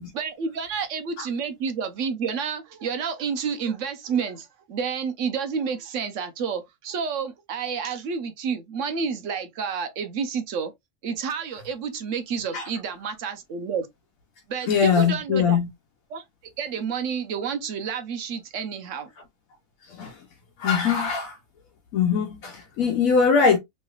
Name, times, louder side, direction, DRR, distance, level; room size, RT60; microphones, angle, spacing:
voice 1, 0.1-10.7 11.0-13.9 14.5-15.6 16.1-16.2 16.6-19.1, right 6 dB, 70° right, 0.9 m, -30 dB
voice 2, 14.7-15.7 20.0-20.2 20.6-21.4 21.9-23.6, left 6 dB, 75° left, 1.1 m, -21 dB
3.1 x 3.1 x 2.3 m
omnidirectional pair, 1.5 m